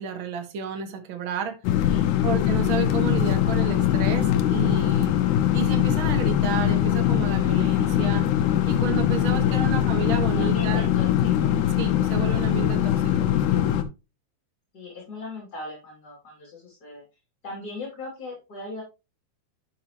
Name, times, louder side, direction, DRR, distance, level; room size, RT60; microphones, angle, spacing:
voice 1, 0.0-1.6 2.2-5.2 5.5-8.2 8.7-10.8 11.8-13.6, right 6 dB, 50° right, 1.9 m, -31 dB
sound 1, 1.6-13.8, left 11 dB, 85° left, 2.5 m, -22 dB
voice 2, 1.8-2.2 7.8-8.2 9.3-9.6 10.3-11.5 14.7-17.0 17.4-18.8, left 2 dB, 35° left, 3.0 m, -38 dB
11.0 x 6.0 x 3.0 m
omnidirectional pair, 3.5 m